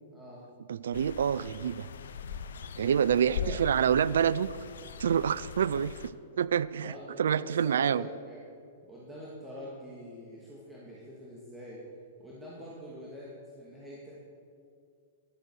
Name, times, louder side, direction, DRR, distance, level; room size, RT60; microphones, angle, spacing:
voice 1, 0.1-0.4 3.0-3.6 6.8-8.4 8.8-11.8 12.2-14.1, equal, 10° right, -7 dB, 2.4 m, -45 dB
voice 2, 0.7-1.9 2.8-4.6 5.0-8.1, right 8 dB, 75° right, 18 dB, 0.3 m, -27 dB
sound 1, 0.9-6.1, left 6 dB, 75° left, 0.7 m, -40 dB
12.0 x 7.4 x 6.4 m, 2.3 s
hypercardioid pair, 115°, 0 cm